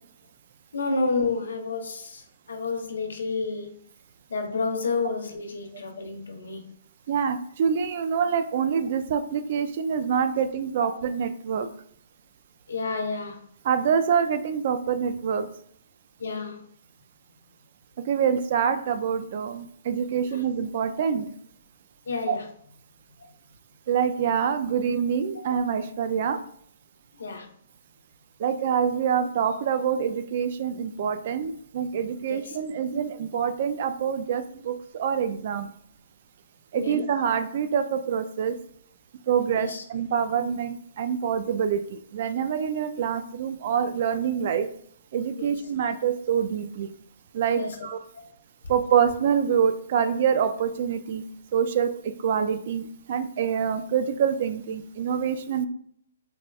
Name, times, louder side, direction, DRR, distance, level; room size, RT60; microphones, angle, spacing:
voice 1, 0.7-3.7 4.3-6.6 10.8-10.9 12.7-13.4 16.2-16.6 20.3-20.4 22.1-22.5 27.2-27.5 32.3-32.6 36.8-37.0 39.5-39.8 45.4-45.5 47.5-47.8 48.1-48.2, left 4 dB, 80° left, 3 dB, 0.7 m, -30 dB
voice 2, 7.1-11.7 13.6-15.5 18.1-21.3 22.3-22.4 23.9-26.4 28.4-35.7 36.7-38.6 39.3-44.7 45.1-46.9 47.3-48.0 48.7-51.2 51.5-55.7, right 7 dB, 50° right, 10 dB, 0.3 m, -26 dB
4.1 x 2.2 x 2.3 m, 0.65 s
hypercardioid pair, 145°, 0 cm